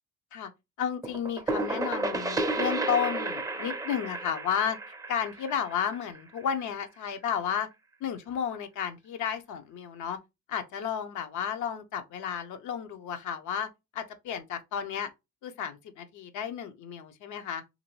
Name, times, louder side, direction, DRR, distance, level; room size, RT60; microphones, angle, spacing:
voice 1, 0.8-4.8 5.1-7.7 8.0-10.2 10.5-15.1 15.4-17.6, left 8 dB, 80° left, 0.5 m, -32 dB
sound 1, 1.0-6.6, right 2 dB, 10° right, 0.4 m, -32 dB
2.9 x 2.6 x 2.9 m
cardioid pair, 90°, 30 cm